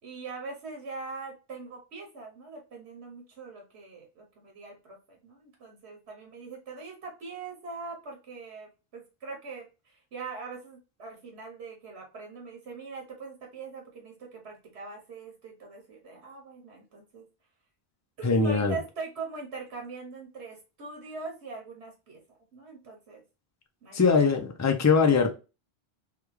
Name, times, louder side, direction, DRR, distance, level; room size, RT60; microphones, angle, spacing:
voice 1, 0.0-17.3 18.2-22.2 22.5-23.2 23.8-24.3, right 4 dB, 85° right, 0 dB, 1.3 m, -42 dB
voice 2, 18.2-18.8 23.9-25.3, left 5 dB, 30° left, 5 dB, 0.3 m, -22 dB
3.5 x 2.3 x 3.1 m, 0.30 s
omnidirectional pair, 1.1 m